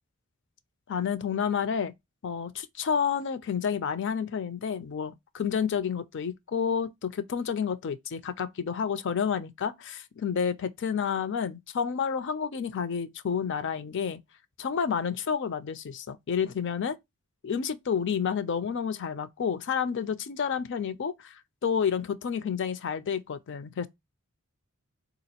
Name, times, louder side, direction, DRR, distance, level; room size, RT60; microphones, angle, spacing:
voice 1, 0.9-1.9 2.2-14.2 14.6-17.0 17.4-21.4 21.6-23.9, left 7 dB, 55° left, 0.4 m, -30 dB
4.0 x 2.5 x 2.8 m
head